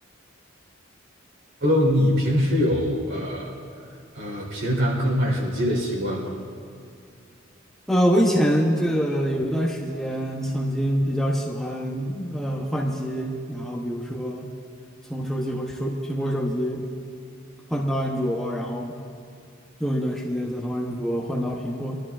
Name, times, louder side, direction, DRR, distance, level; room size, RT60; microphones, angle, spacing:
voice 1, 1.6-3.5 4.1-6.3, equal, 70° right, -2 dB, 3.9 m, -23 dB
voice 2, 7.9-14.5 15.1-16.8 17.7-19.0 19.8-22.0, equal, ahead, -3 dB, 0.8 m, -25 dB
25.0 x 12.5 x 2.5 m, 2.4 s
head